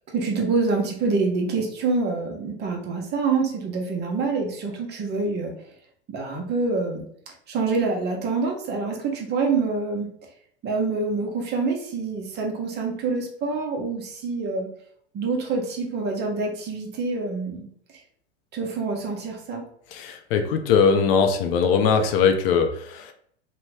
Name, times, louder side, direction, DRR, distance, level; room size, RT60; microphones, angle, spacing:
voice 1, 0.1-5.5 6.1-10.1 10.6-14.7 15.1-17.7 18.5-19.6, right 4 dB, 30° right, 1 dB, 0.7 m, -26 dB
voice 2, 19.9-23.1, left 6 dB, 60° left, 6 dB, 0.5 m, -21 dB
2.7 x 2.2 x 3.2 m, 0.63 s
hypercardioid pair, 100°, 33 cm